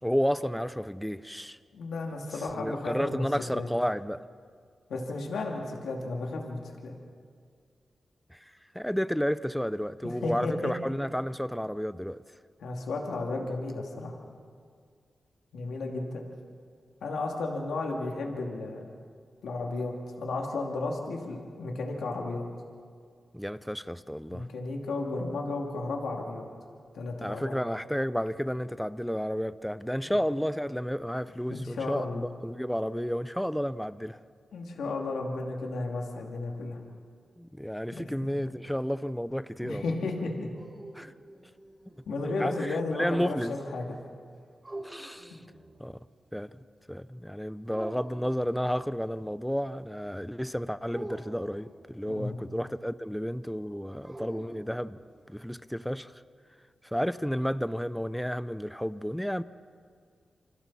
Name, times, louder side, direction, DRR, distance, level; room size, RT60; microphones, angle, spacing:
voice 1, 0.0-1.6 2.5-4.2 8.3-12.2 23.3-24.5 27.2-34.2 37.4-39.9 40.9-41.1 42.2-43.6 44.8-45.4 45.8-46.0 46.3-46.6 46.9-55.0 55.3-56.1 56.8-59.4, equal, 5° left, 14 dB, 0.7 m, -32 dB
voice 2, 1.7-3.2 3.5-3.7 4.9-6.9 10.0-10.7 12.6-14.2 15.5-16.2 17.0-18.9 19.4-22.4 24.3-26.5 26.9-27.5 30.0-30.1 31.5-32.2 34.5-36.8 37.9-38.3 39.6-40.5 42.1-43.9 52.1-52.4, left 3 dB, 85° left, 0 dB, 2.7 m, -33 dB
sound 1, 40.3-42.1 44.6-45.9 47.7-48.5 50.9-52.0 54.0-55.2, right 1 dB, 30° right, 5.7 m, -45 dB
28.5 x 25.5 x 4.3 m, 2.1 s
cardioid pair, 50°, 0 cm